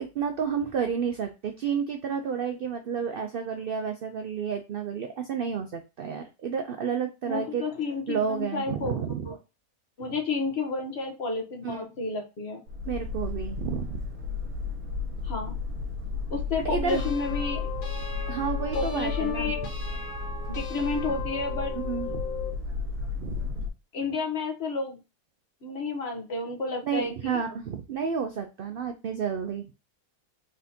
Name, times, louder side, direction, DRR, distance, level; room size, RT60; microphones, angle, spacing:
voice 1, 0.0-7.6 8.1-9.3 11.6-11.9 12.8-14.0 16.6-17.1 18.3-19.7 21.8-22.2 23.2-23.6 26.8-29.7, right 6 dB, 85° right, 5 dB, 0.5 m, -31 dB
voice 2, 7.3-9.4 10.0-12.6 15.2-15.6 16.3-17.7 18.7-19.6 20.5-21.8 23.9-25.0 25.6-27.4, left 3 dB, 50° left, 3 dB, 1.1 m, -31 dB
Boat Water vehicle, 12.7-23.7, left 4 dB, 70° right, 1.5 m, -33 dB
sound 1, 16.9-22.6, left 5 dB, 80° left, 1.7 m, -38 dB
4.1 x 3.6 x 2.7 m, 0.27 s
omnidirectional pair, 1.5 m